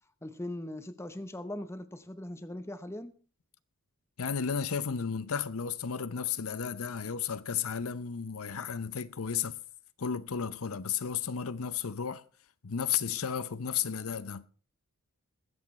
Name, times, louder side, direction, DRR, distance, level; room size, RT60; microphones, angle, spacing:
voice 1, 0.2-3.1, left 1 dB, 10° left, 0.8 m, -40 dB
voice 2, 4.2-9.6 10.0-12.2 12.6-14.4, left 7 dB, 70° left, 0.7 m, -33 dB
21.0 x 8.4 x 4.3 m
head